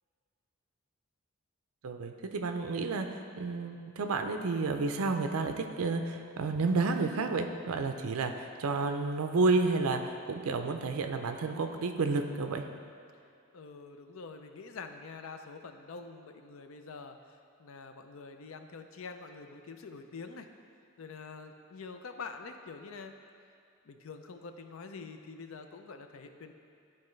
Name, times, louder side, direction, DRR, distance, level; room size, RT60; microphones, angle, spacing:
voice 1, 1.8-3.1 3.4-12.7, right 3 dB, 85° right, 6 dB, 0.5 m, -31 dB
voice 2, 13.5-20.5 21.0-23.1 23.8-26.5, left 4 dB, 70° left, 7 dB, 0.5 m, -46 dB
11.0 x 4.2 x 3.2 m, 2.4 s
head